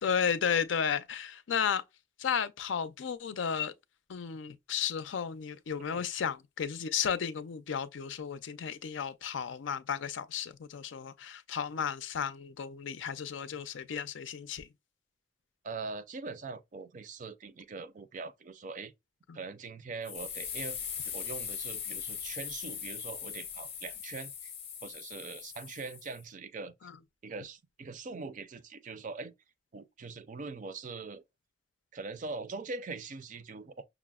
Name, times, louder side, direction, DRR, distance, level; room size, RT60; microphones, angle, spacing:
voice 1, 0.0-1.8 2.2-3.7 4.1-14.7 19.3-19.4, left 7 dB, 80° left, 0.4 m, -33 dB
voice 2, 15.6-18.9 19.3-24.5 24.8-26.7 27.2-29.3 29.7-31.2 31.9-33.8, right 4 dB, 45° right, 0.4 m, -42 dB
sound 1, 20.0-26.2, left 8 dB, 30° left, 0.5 m, -40 dB
5.9 x 2.0 x 2.2 m
head